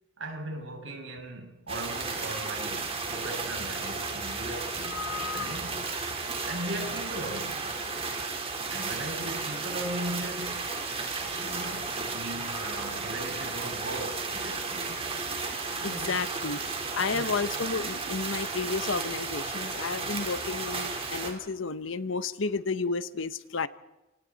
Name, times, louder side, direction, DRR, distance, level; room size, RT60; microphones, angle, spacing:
voice 1, 0.2-5.8 6.4-7.9 8.7-10.7 11.4-15.1 15.7-16.2 17.1-17.4, right 1 dB, 70° right, 6.4 m, -38 dB
sound 1, 1.7-21.3, right 4 dB, 30° right, 3.9 m, -34 dB
voice 2, 4.8-5.6 15.8-16.6 17.0-23.7, left 4 dB, 75° left, 1.0 m, -32 dB
27.0 x 26.5 x 4.2 m
head